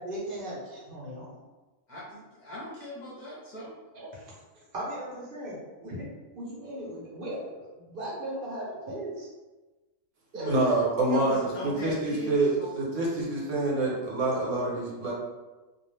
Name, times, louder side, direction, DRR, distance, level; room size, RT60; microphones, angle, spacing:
voice 1, 0.0-1.3 3.9-4.3 4.7-6.0 6.3-7.5 7.8-9.3 10.3-10.6, right 1 dB, 50° right, -5 dB, 0.8 m, -37 dB
voice 2, 1.9-3.7 10.3-10.6 11.1-12.7, equal, 40° left, -7 dB, 0.8 m, -39 dB
voice 3, 10.5-15.1, right 2 dB, 70° right, -4 dB, 1.0 m, -27 dB
2.4 x 2.3 x 3.2 m, 1.2 s
omnidirectional pair, 1.4 m